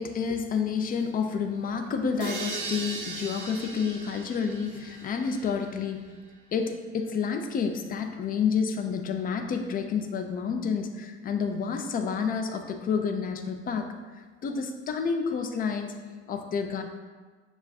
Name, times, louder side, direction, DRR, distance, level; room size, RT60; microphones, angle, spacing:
voice 1, 0.0-6.0 6.5-13.9 14.4-15.9 16.3-16.8, left 6 dB, 25° left, 5 dB, 0.4 m, -29 dB
sound 1, 2.2-5.9, right 3 dB, 85° right, 0.7 m, -38 dB
6.4 x 2.3 x 2.3 m, 1.4 s
hypercardioid pair, 75°, 34 cm